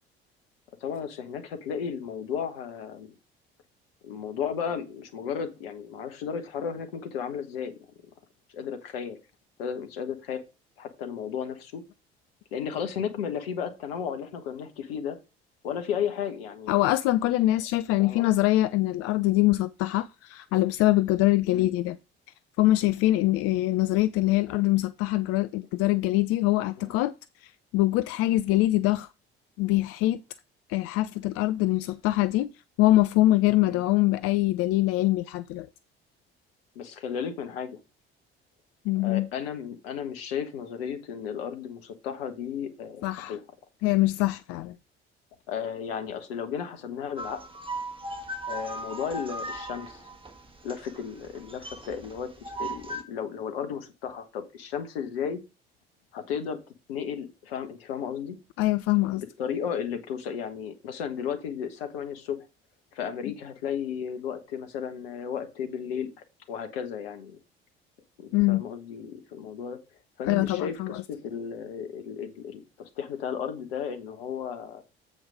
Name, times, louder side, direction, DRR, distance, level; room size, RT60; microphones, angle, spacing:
voice 1, 0.8-3.2 4.0-7.8 8.5-9.2 9.6-10.4 10.8-11.8 12.5-15.2 15.6-16.7 18.0-18.3 21.5-21.7 24.5-24.7 26.8-26.9 33.6-33.8 36.7-37.8 39.0-43.4 45.5-47.4 48.5-50.0 50.6-55.4 56.1-56.6 56.9-58.4 59.1-62.4 62.9-66.1 66.5-67.4 68.2-69.8 70.2-74.8, left 7 dB, 70° left, 1.3 m, -34 dB
voice 2, 16.7-22.0 22.6-27.1 27.4-29.1 29.6-30.2 30.7-32.5 32.8-35.7 38.8-39.3 43.0-43.4 43.8-44.8 58.6-59.2 63.3-63.4 68.3-68.6 70.2-71.0, left 17 dB, 50° left, 0.5 m, -24 dB
sound 1, 47.2-53.0, right 1 dB, 15° right, 1.7 m, -38 dB
7.9 x 5.0 x 4.9 m
figure-of-eight pair, 55°, 30 cm